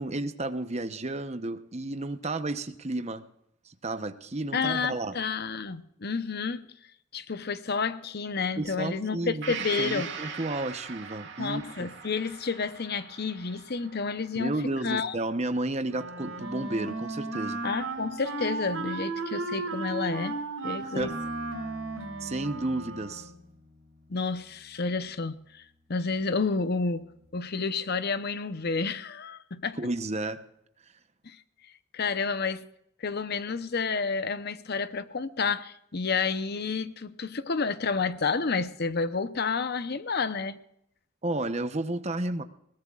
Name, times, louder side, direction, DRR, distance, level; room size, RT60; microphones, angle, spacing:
voice 1, 0.0-3.2 3.6-5.2 8.6-11.7 14.3-17.6 20.8-21.2 22.2-23.3 29.7-30.4 41.2-42.4, right 2 dB, 30° right, 0.8 m, -32 dB
voice 2, 4.5-6.7 7.1-10.1 11.4-14.6 14.8-15.2 17.6-21.1 24.1-25.6 25.9-27.1 27.3-29.8 31.2-31.4 31.9-32.7 33.0-40.6, left 4 dB, 45° left, 0.8 m, -30 dB
Gong, 9.4-17.1 17.4-17.5, right 6 dB, 55° right, 2.2 m, -42 dB
Wind instrument woodwind instrument, 15.9-23.4, right 3 dB, 80° right, 5.6 m, -35 dB
Bass guitar, 21.0-27.3, left 2 dB, ahead, 2.8 m, -52 dB
21.5 x 18.5 x 2.4 m
head